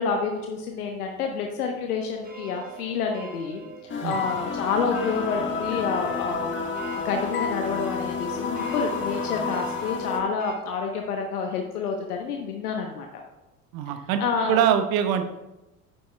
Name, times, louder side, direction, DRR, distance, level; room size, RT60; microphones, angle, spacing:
voice 1, 0.0-3.6 4.0-13.1 14.2-14.6, left 5 dB, 75° left, 3 dB, 1.0 m, -28 dB
sound 1, 2.2-10.6, right 5 dB, 20° right, 1.4 m, -45 dB
sound 2, 3.9-10.2, left 5 dB, 25° left, 1.7 m, -30 dB
voice 2, 13.7-14.2 14.5-15.3, right 9 dB, 50° right, 7 dB, 1.0 m, -23 dB
10.0 x 9.4 x 2.3 m, 0.99 s
figure-of-eight pair, 70°, 46 cm